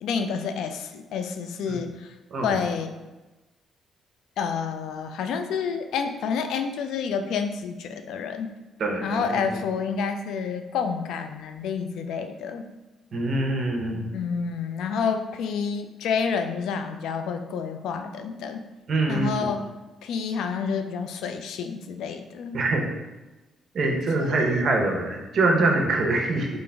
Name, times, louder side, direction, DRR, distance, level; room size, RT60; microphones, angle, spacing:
voice 1, 0.0-3.0 4.4-8.5 9.0-12.7 14.1-18.6 19.1-19.7 20.0-22.6 24.2-24.7, left 6 dB, 80° left, 7 dB, 0.3 m, -29 dB
voice 2, 8.8-9.4 13.1-14.1 18.9-19.5 22.5-22.8 23.7-26.5, right 2 dB, 55° right, 1 dB, 0.7 m, -24 dB
3.7 x 2.5 x 3.4 m, 1.1 s
cardioid pair, 90°, 0 cm